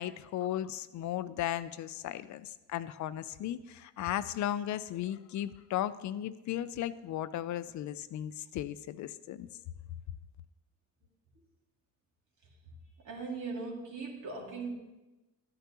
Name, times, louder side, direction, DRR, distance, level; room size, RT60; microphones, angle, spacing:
voice 1, 0.0-9.5, left 12 dB, 70° left, 14 dB, 0.5 m, -36 dB
voice 2, 13.0-14.7, right 4 dB, 70° right, -1 dB, 2.4 m, -39 dB
12.0 x 10.5 x 3.0 m, 1.0 s
cardioid pair, 90°, 30 cm